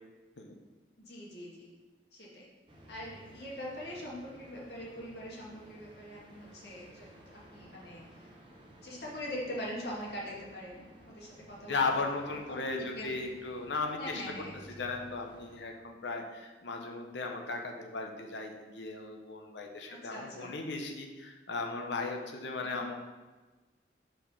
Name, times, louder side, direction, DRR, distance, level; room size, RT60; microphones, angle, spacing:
voice 1, 1.1-1.7 2.1-2.5 2.9-8.0 8.8-11.8 12.2-13.2 13.9-14.6 19.9-20.5 22.6-22.9, equal, 65° left, -4 dB, 2.0 m, -43 dB
sound 1, 2.7-15.6, equal, 25° right, 1.0 m, -56 dB
voice 2, 11.7-14.4 14.8-22.9, left 3 dB, 80° left, 3 dB, 0.9 m, -36 dB
5.3 x 4.3 x 5.8 m, 1.2 s
head